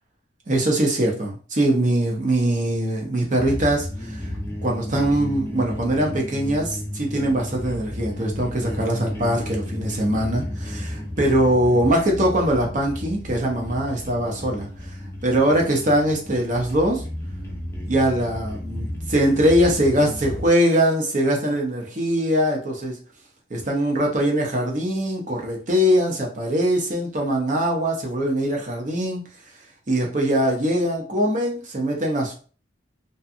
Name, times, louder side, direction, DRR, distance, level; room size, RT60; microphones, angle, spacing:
voice 1, 0.5-4.3 4.6-17.0 17.9-23.0 23.5-29.2 29.9-32.3, right 1 dB, 40° right, 0 dB, 0.6 m, -22 dB
sound 1, 3.3-20.5, left 1 dB, 15° left, 0.4 m, -33 dB
2.6 x 2.2 x 2.5 m, 0.39 s
head